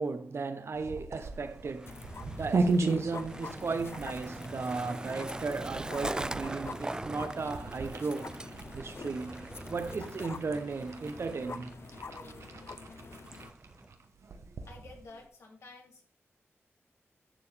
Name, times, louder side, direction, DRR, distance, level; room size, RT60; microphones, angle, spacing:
voice 1, 0.0-2.1 2.3-8.4 8.8-11.7, right 4 dB, 60° right, 0.9 m, -36 dB
sound 1, 0.7-15.3, right 3 dB, 85° right, 1.1 m, -37 dB
Skateboard, 1.2-13.9, right 2 dB, 15° right, 0.3 m, -43 dB
sound 2, 1.8-13.5, left 5 dB, 55° left, 0.5 m, -47 dB
voice 2, 14.7-16.0, left 3 dB, 85° left, 2.4 m, -51 dB
11.0 x 7.0 x 3.4 m
wide cardioid pair, 85°, 5 cm